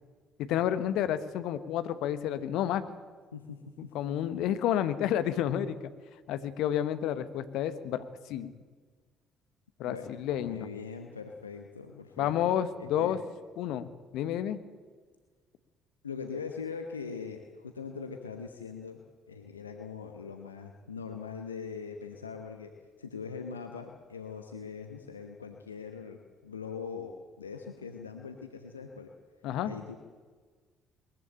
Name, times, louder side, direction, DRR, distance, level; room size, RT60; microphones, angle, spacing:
voice 1, 0.4-2.8 3.8-5.8 6.3-8.5 9.8-10.7 12.2-13.2 13.6-14.6 29.4-29.7, left 10 dB, 60° left, 12 dB, 1.1 m, -30 dB
voice 2, 3.3-3.9 9.8-12.7 13.0-13.2 16.0-19.0 19.3-22.7 23.0-29.1 29.6-30.0, left 5 dB, 85° left, 4 dB, 1.0 m, -41 dB
21.0 x 14.0 x 8.9 m, 1.5 s
figure-of-eight pair, 50°, 0 cm